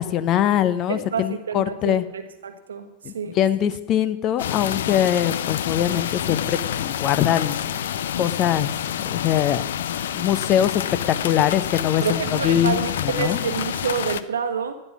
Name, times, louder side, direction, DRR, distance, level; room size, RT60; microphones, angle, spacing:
voice 1, 0.0-2.0 3.0-7.6 8.2-8.7 9.1-9.6 10.1-13.4, left 11 dB, 35° left, 14 dB, 0.8 m, -22 dB
voice 2, 0.9-2.9 3.1-3.4 3.6-3.7 12.0-14.8, right 6 dB, 70° right, 8 dB, 1.3 m, -28 dB
sound 1, 4.4-14.2, left 10 dB, 60° left, 0.5 m, -28 dB
14.0 x 9.9 x 6.0 m, 1.0 s
figure-of-eight pair, 90°, 0 cm